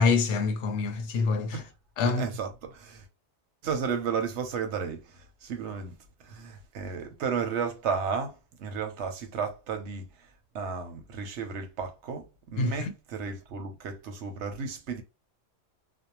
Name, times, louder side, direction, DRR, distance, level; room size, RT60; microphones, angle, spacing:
voice 1, 0.0-1.6 2.0-2.2 12.6-12.9, left 4 dB, 85° left, 0.9 m, -26 dB
voice 2, 2.1-3.0 3.6-6.0 6.2-10.1 10.5-15.0, right 6 dB, 85° right, 1.0 m, -33 dB
2.6 x 2.1 x 2.8 m
omnidirectional pair, 1.2 m